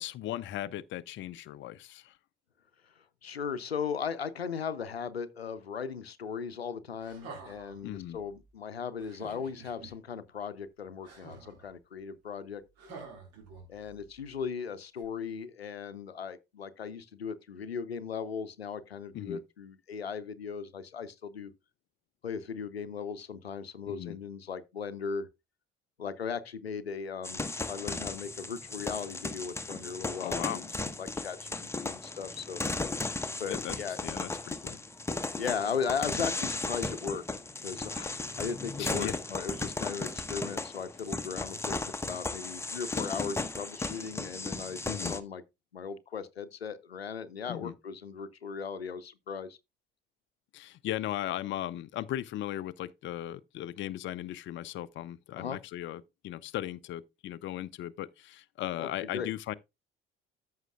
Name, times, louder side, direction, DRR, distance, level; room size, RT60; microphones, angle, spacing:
voice 1, 0.0-2.2 7.8-8.2 19.1-19.4 23.9-24.2 30.2-30.6 33.5-33.7 34.0-34.8 38.8-39.2 44.9-45.2 47.5-47.7 50.5-59.5, left 13 dB, 40° left, 0.6 m, -37 dB
voice 2, 2.8-12.6 13.7-21.5 22.2-25.3 26.0-30.7 31.0-32.6 33.4-34.0 35.4-45.4 45.7-49.6 55.4-55.6 58.8-59.3, left 6 dB, 85° left, 0.6 m, -37 dB
sound 1, 7.0-7.8 9.0-9.9 11.0-11.7 12.8-13.9 15.0-15.1, right 4 dB, 55° right, 3.4 m, -48 dB
sound 2, 27.2-45.2, left 3 dB, 10° left, 0.9 m, -36 dB
14.0 x 5.7 x 2.3 m
figure-of-eight pair, 55°, 30 cm